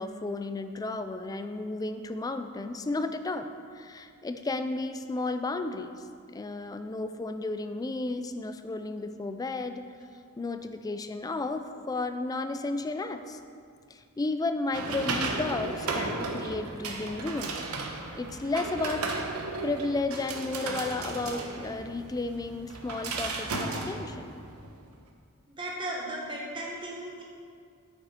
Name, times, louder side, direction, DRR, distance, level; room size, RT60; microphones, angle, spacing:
voice 1, 0.0-3.5 3.7-6.0 6.3-9.8 10.4-13.4 13.9-17.6 18.2-19.0 19.6-24.2, left 3 dB, 15° left, 9 dB, 0.3 m, -33 dB
sound 1, 14.7-24.8, right 3 dB, 80° right, 0.9 m, -35 dB
voice 2, 25.5-27.2, right 1 dB, 20° right, -3 dB, 0.9 m, -36 dB
8.7 x 6.8 x 4.3 m, 2.2 s
head